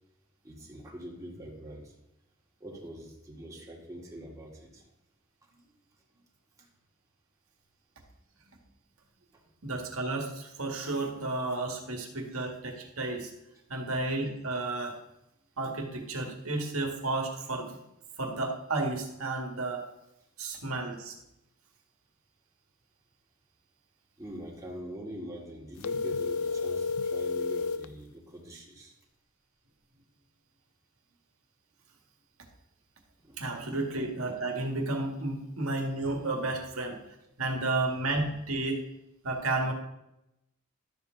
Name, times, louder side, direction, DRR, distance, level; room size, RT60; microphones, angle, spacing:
voice 1, 0.4-1.9 2.6-4.8 6.6-6.7 9.3-9.4 24.2-28.9 33.2-33.8, equal, 15° right, -3 dB, 1.9 m, -44 dB
voice 2, 9.6-13.3 13.7-15.0 15.6-17.8 18.2-19.9 20.4-21.1 33.4-37.0 37.4-38.8 39.2-39.7, right 2 dB, 80° right, 2 dB, 1.9 m, -32 dB
sound 1, 25.8-27.9, left 4 dB, 75° left, 0.4 m, -31 dB
12.5 x 7.2 x 3.9 m, 0.87 s
head